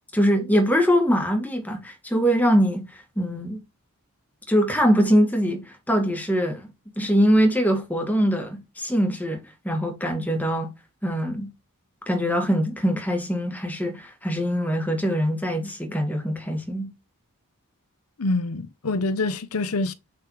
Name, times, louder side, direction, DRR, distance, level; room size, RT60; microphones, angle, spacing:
voice 1, 0.1-3.6 4.5-6.7 7.0-10.7 11.0-11.5 12.1-16.9, equal, 5° left, 2.0 m, -23 dB
voice 2, 18.2-19.9, left 2 dB, 85° left, 0.9 m, -25 dB
7.9 x 5.9 x 3.2 m
head